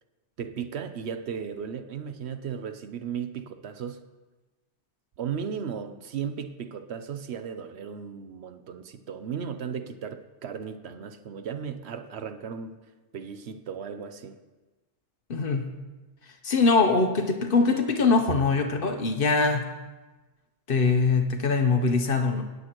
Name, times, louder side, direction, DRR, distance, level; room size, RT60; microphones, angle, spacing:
voice 1, 0.4-4.0 5.2-12.8 13.1-14.4, right 7 dB, 65° right, 9 dB, 0.9 m, -35 dB
voice 2, 15.3-15.7 16.4-19.7 20.7-22.4, left 4 dB, 50° left, 6 dB, 0.9 m, -22 dB
17.0 x 8.2 x 3.0 m, 1.2 s
omnidirectional pair, 1.2 m